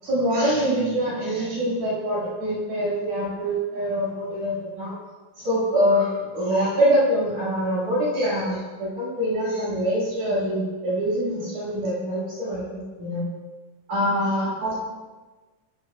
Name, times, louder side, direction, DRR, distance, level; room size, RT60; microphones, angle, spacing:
voice 1, 0.0-4.9 5.4-13.2 13.9-14.8, equal, 60° right, -7 dB, 7.9 m, -24 dB
27.0 x 18.0 x 2.4 m, 1.3 s
omnidirectional pair, 4.2 m